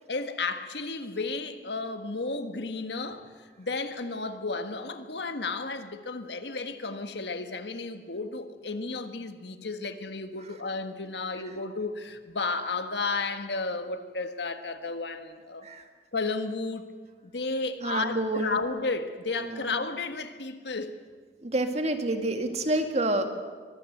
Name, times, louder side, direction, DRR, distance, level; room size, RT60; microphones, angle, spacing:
voice 1, 0.1-3.3 3.6-15.7 16.1-16.9 17.2-21.0, left 3 dB, 70° left, 8 dB, 1.5 m, -33 dB
voice 2, 17.8-18.6 19.4-19.7 21.4-23.3, right 1 dB, 40° right, 6 dB, 2.1 m, -28 dB
24.0 x 20.0 x 7.9 m, 1.5 s
head